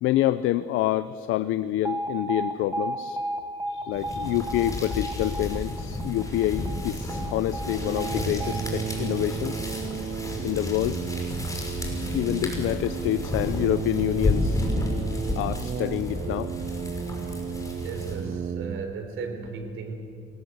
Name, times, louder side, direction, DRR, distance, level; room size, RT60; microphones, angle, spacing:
voice 1, 0.0-3.2 3.7-9.7 10.4-11.0 12.1-14.7 15.3-16.5, left 14 dB, 90° left, 15 dB, 0.6 m, -27 dB
Alarm, 1.8-9.9, right 2 dB, 15° right, 2.2 m, -35 dB
sound 1, 3.9-18.4, left 2 dB, 15° left, 5.6 m, -31 dB
sound 2, 7.6-18.9, right 8 dB, 45° right, 0.6 m, -34 dB
voice 2, 17.8-19.9, right 4 dB, 85° right, 6 dB, 3.8 m, -35 dB
26.0 x 19.5 x 7.9 m, 2.3 s
cardioid pair, 90°, 20 cm